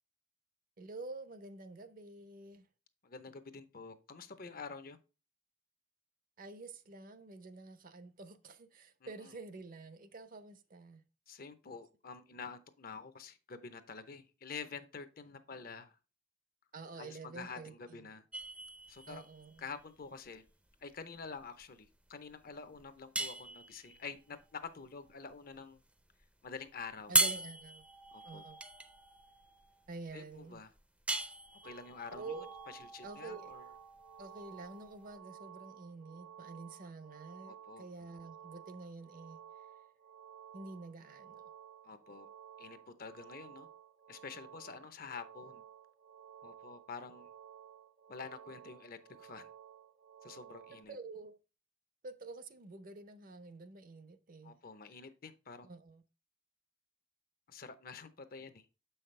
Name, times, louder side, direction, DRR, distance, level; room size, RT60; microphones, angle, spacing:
voice 1, 0.8-2.6 6.4-11.0 16.7-18.1 19.1-19.6 27.1-27.8 28.2-28.6 29.9-30.6 32.1-32.5 33.0-33.5 34.2-39.4 40.5-41.4 50.9-51.4 52.0-54.6 55.6-56.0, right 3 dB, 50° right, 0.7 m, -48 dB
voice 2, 3.0-5.0 9.0-9.4 11.3-16.0 17.0-18.2 18.9-19.2 19.6-20.4 20.8-25.8 26.4-27.1 28.1-28.5 30.1-30.7 31.6-33.7 37.5-37.9 41.8-42.3 42.6-43.7 44.1-45.6 46.4-47.3 48.1-49.5 50.2-51.0 54.4-55.7 57.5-58.7, left 5 dB, 50° left, 0.7 m, -48 dB
sound 1, 18.3-35.2, right 2 dB, 5° right, 0.5 m, -39 dB
sound 2, 31.6-50.8, right 9 dB, 90° right, 0.7 m, -55 dB
7.3 x 5.7 x 3.3 m
head